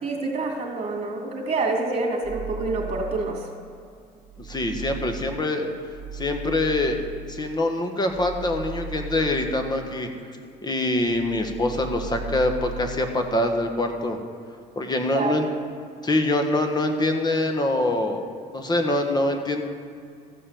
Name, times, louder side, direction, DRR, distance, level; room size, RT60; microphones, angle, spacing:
voice 1, 0.0-3.4 15.1-15.4, right 3 dB, 40° right, 0 dB, 2.7 m, -27 dB
sound 1, 2.2-3.7 4.1-10.6 10.9-13.2, right 4 dB, 5° right, 2.6 m, -38 dB
voice 2, 4.4-5.7 6.1-7.0 7.3-10.1 10.6-14.2 14.7-15.5 16.0-18.2 18.5-19.6, left 2 dB, 25° left, 5 dB, 1.3 m, -24 dB
14.0 x 5.6 x 7.0 m, 2.3 s
cardioid pair, 110°, 17 cm